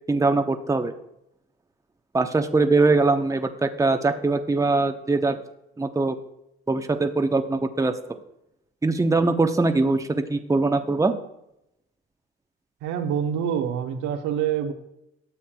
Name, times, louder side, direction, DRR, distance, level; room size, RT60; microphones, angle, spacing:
voice 1, 0.1-0.9 2.1-5.4 5.8-6.2 6.7-8.0 8.8-11.1, right 3 dB, 10° right, 6 dB, 0.9 m, -22 dB
voice 2, 12.8-14.7, right 8 dB, 65° right, 5 dB, 1.2 m, -26 dB
12.5 x 8.2 x 2.3 m, 0.82 s
hypercardioid pair, 55°, 32 cm